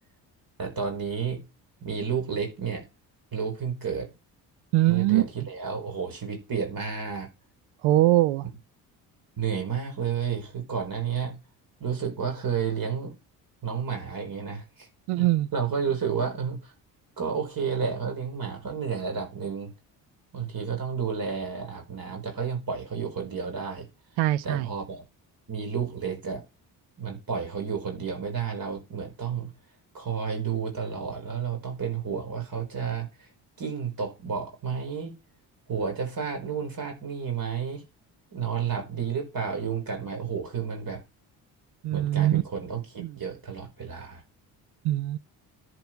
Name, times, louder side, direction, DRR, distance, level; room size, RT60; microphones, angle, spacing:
voice 1, 0.6-1.4 1.8-2.9 3.3-4.1 4.9-7.3 9.4-11.4 11.8-13.1 13.6-14.9 15.5-16.7 17.2-19.7 20.3-23.9 24.4-25.0 25.5-26.4 27.0-29.5 29.9-33.3 33.6-35.2 35.7-37.9 38.3-41.0 41.9-44.2, right 6 dB, 45° right, 4.9 m, -31 dB
voice 2, 4.7-5.2 7.8-8.5 15.1-15.5 24.2-24.7 41.8-42.4 43.0-43.2 44.8-45.2, right 16 dB, 85° right, 0.8 m, -22 dB
10.5 x 6.9 x 4.6 m
supercardioid pair, 65°, 46 cm